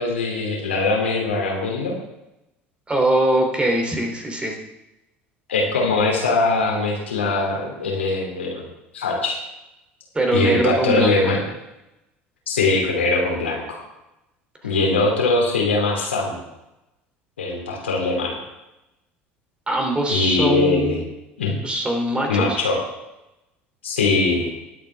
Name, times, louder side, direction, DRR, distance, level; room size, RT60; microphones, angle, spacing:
voice 1, 0.0-1.9 5.5-8.6 8.9-9.4 10.3-11.4 12.5-13.8 14.6-16.4 17.4-18.4 20.1-21.0 21.4-21.6 22.3-22.8 23.8-24.5, left 3 dB, 75° left, -1 dB, 3.1 m, -21 dB
voice 2, 2.9-4.6 10.1-11.3 19.7-21.0 21.6-22.6, right 1 dB, 15° right, 2 dB, 3.1 m, -22 dB
20.0 x 8.5 x 3.5 m, 0.93 s
figure-of-eight pair, 65°, 6 cm